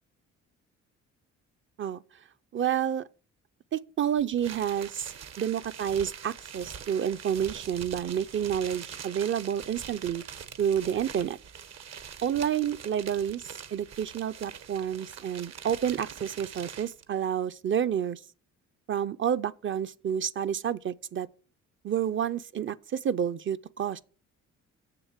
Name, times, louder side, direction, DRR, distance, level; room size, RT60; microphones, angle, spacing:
voice 1, 2.5-3.1 3.7-10.2 10.6-11.4 12.2-18.2 18.9-21.3 21.8-24.0, right 9 dB, 40° right, 0.5 m, -29 dB
sound 1, 4.4-17.0, right 8 dB, 60° right, 1.0 m, -44 dB
7.2 x 6.8 x 7.3 m
cardioid pair, 90°, 30 cm